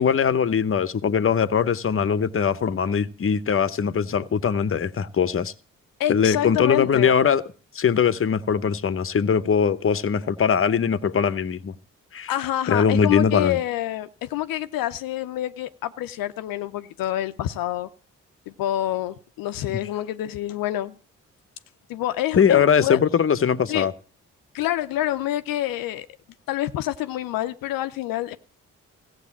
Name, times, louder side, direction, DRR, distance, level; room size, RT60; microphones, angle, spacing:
voice 1, 0.0-5.5 6.1-7.4 7.7-11.7 12.1-12.3 12.7-13.6 19.7-19.8 22.3-23.9, left 7 dB, 40° left, 0.9 m, -21 dB
voice 2, 6.0-7.2 12.3-17.9 18.5-21.0 21.9-23.0 23.7-23.9 24.5-26.1 26.5-28.4, left 13 dB, 80° left, 0.6 m, -27 dB
15.0 x 8.0 x 7.2 m
supercardioid pair, 45°, 34 cm